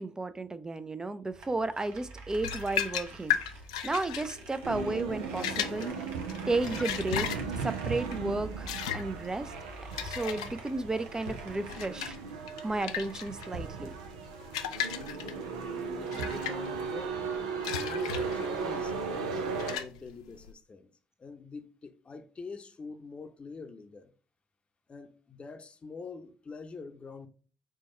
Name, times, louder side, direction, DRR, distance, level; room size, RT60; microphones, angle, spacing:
voice 1, 0.0-3.4 3.8-6.0 6.5-7.3 7.6-9.5 10.0-12.2 12.6-13.9, right 2 dB, 20° right, 0.5 m, -33 dB
sound 1, 1.3-12.1, right 3 dB, 70° right, 0.9 m, -48 dB
sound 2, 2.3-20.5, left 9 dB, 85° left, 0.3 m, -37 dB
sound 3, 4.6-19.8, right 5 dB, 90° right, 0.5 m, -37 dB
voice 2, 15.2-15.5 15.9-17.2 17.7-20.9 21.2-24.1 24.9-27.3, left 4 dB, 35° left, 0.7 m, -45 dB
4.5 x 2.3 x 4.3 m
hypercardioid pair, 50°, 3 cm